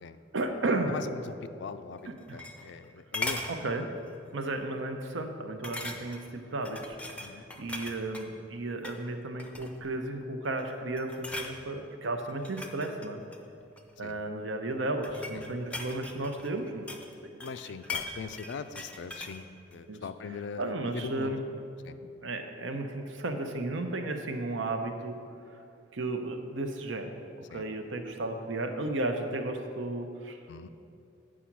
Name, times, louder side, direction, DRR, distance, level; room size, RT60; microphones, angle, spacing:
voice 1, 0.3-0.9 2.1-2.4 3.5-3.9 4.3-7.0 7.6-13.2 14.0-16.9 17.2-17.4 19.9-20.0 20.6-21.4 22.2-25.2 25.9-27.1 27.4-30.4, right 2 dB, 85° right, 6 dB, 0.7 m, -34 dB
voice 2, 0.9-3.4 7.2-7.5 14.0-14.2 15.3-15.5 17.4-21.4 21.8-22.0 27.5-27.7 30.5-30.7, left 5 dB, 70° left, 12 dB, 0.4 m, -41 dB
sound 1, 2.0-2.8 3.1-3.5 4.1-4.3 4.6-4.7 5.6-6.3 6.6-8.3 8.7-9.0 9.4-9.9 10.4-10.7 11.0-11.5 12.3-13.9 14.7-17.1 17.4-19.4 19.7-19.8, left 2 dB, 5° left, 0.5 m, -39 dB
8.4 x 5.0 x 5.9 m, 2.6 s
head